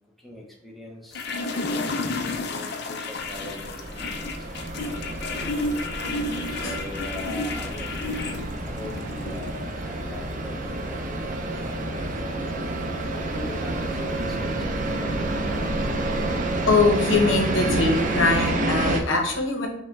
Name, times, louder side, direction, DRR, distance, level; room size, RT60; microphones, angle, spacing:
voice 1, 0.2-5.5 6.4-12.4 13.1-15.6, left 2 dB, ahead, -2 dB, 0.7 m, -41 dB
sound 1, 1.1-18.2, left 2 dB, 55° left, 0.5 m, -34 dB
sound 2, 3.2-19.0, right 1 dB, 40° right, 0.5 m, -29 dB
voice 2, 6.1-6.8 16.7-19.7, left 3 dB, 85° left, 1 dB, 0.9 m, -23 dB
5.6 x 2.2 x 3.1 m, 0.84 s
head